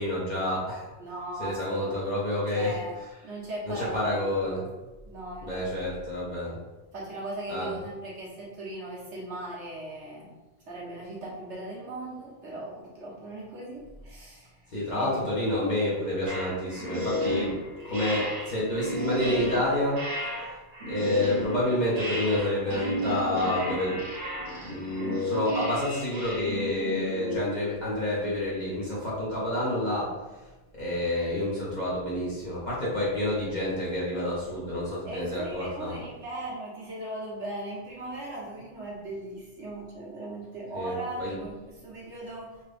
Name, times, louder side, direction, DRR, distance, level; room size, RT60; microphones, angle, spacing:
voice 1, 0.0-0.9 1.4-2.8 3.6-4.7 5.4-6.6 7.5-7.7 14.7-17.6 17.8-20.1 20.4-20.5 20.9-24.0 24.4-36.0 40.7-41.4, left 1 dB, 40° left, -8 dB, 1.5 m, -29 dB
voice 2, 1.0-1.9 2.3-2.9 3.2-4.6 5.0-5.7 6.9-10.3 10.7-15.4 35.0-42.6, right 1 dB, 70° right, -5 dB, 1.5 m, -38 dB
sound 1, 16.3-27.4, equal, 55° right, 1.2 m, -32 dB
4.3 x 2.9 x 3.4 m, 1.1 s
omnidirectional pair, 1.2 m